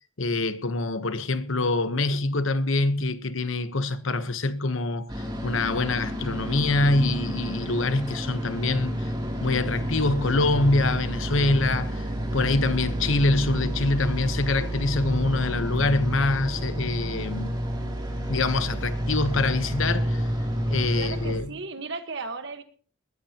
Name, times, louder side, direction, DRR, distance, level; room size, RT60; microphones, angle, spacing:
voice 1, 0.2-9.1 9.4-12.1 12.3-17.5 18.3-20.2 20.7-21.5, left 2 dB, 70° left, 1.1 m, -25 dB
sound 1, 5.1-21.4, equal, 20° right, 3.0 m, -30 dB
voice 2, 20.7-22.6, right 3 dB, 55° right, 1.4 m, -36 dB
20.0 x 15.0 x 3.0 m
head